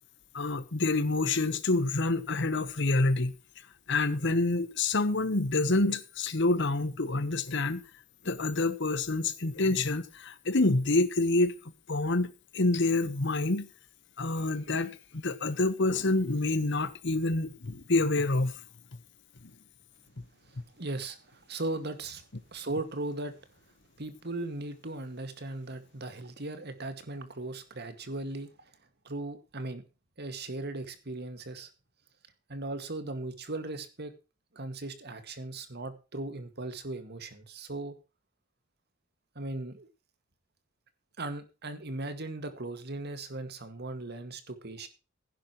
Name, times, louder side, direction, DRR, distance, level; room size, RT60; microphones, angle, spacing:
voice 1, 0.3-3.3 3.9-7.8 8.2-11.5 11.9-13.7 14.2-18.5, left 2 dB, 65° left, 1.2 m, -27 dB
voice 2, 20.5-23.4 24.0-28.7 29.0-29.8 30.2-31.7 32.5-34.1 34.5-38.0 39.4-39.9 41.2-44.9, right 2 dB, 55° right, 2.1 m, -38 dB
16.0 x 10.5 x 3.1 m
head